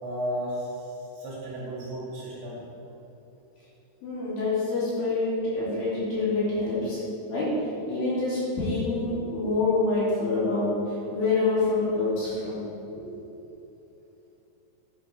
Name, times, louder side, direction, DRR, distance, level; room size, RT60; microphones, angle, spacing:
voice 1, 0.0-0.7 1.2-2.6, equal, 60° right, -6 dB, 3.7 m, -33 dB
voice 2, 4.0-7.0 7.3-12.7 13.0-13.1, left 3 dB, 55° left, -9 dB, 3.8 m, -26 dB
11.0 x 10.5 x 3.3 m, 3.0 s
omnidirectional pair, 5.7 m